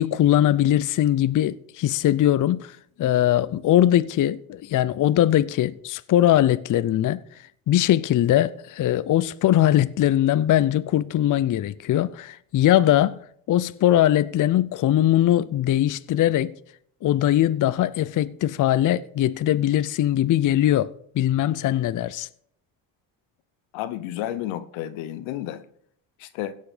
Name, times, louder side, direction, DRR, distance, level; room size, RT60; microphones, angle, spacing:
voice 1, 0.0-7.2 7.7-13.2 13.5-16.5 17.0-22.3, left 12 dB, 45° left, 0.5 m, -21 dB
voice 2, 23.7-25.6 26.2-26.6, left 13 dB, 85° left, 0.9 m, -31 dB
16.5 x 5.7 x 5.0 m
supercardioid pair, 80°, 47 cm